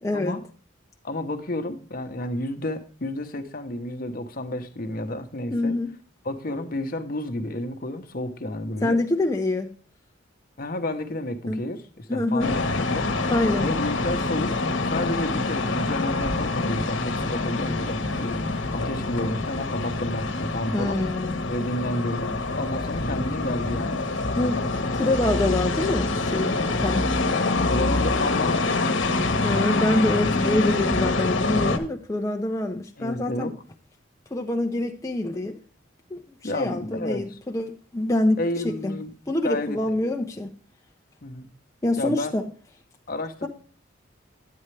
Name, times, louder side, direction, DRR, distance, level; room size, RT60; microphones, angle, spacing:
voice 1, 0.0-0.4 5.5-5.9 8.8-9.8 11.5-11.6 12.1-12.5 13.3-13.7 20.7-21.4 24.4-24.6 24.9-27.1 29.4-33.6 34.3-35.6 36.1-38.4 38.6-39.0 39.3-40.5 41.8-42.5, left 2 dB, 15° left, 0.5 m, -25 dB
voice 2, 1.0-5.7 6.2-9.0 10.6-13.1 13.6-14.5 14.8-18.4 18.7-21.0 21.5-24.0 27.7-28.8 30.2-30.5 33.0-33.5 36.4-37.2 38.4-39.1 39.4-39.8 41.2-41.5 42.0-42.3 43.1-43.5, left 1 dB, 50° left, 0.9 m, -31 dB
sound 1, 12.4-31.8, left 3 dB, 70° left, 1.1 m, -26 dB
9.4 x 8.6 x 3.3 m
head